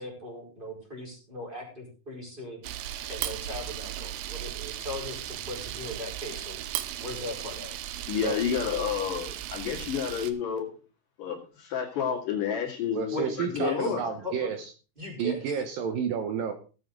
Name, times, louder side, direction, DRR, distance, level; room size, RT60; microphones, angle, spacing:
voice 1, 0.0-2.6 3.1-6.7 7.0-7.7 13.1-13.9 14.2-14.5 15.0-15.6, equal, 10° right, -3 dB, 4.8 m, -38 dB
Camera, 2.6-10.3, right 12 dB, 90° right, 2.8 m, -36 dB
voice 2, 8.1-10.8 11.2-14.0, left 8 dB, 60° left, 0 dB, 3.6 m, -30 dB
voice 3, 12.9-14.7 15.2-16.5, right 7 dB, 70° right, 6 dB, 2.6 m, -31 dB
17.0 x 8.3 x 3.9 m, 0.35 s
omnidirectional pair, 4.5 m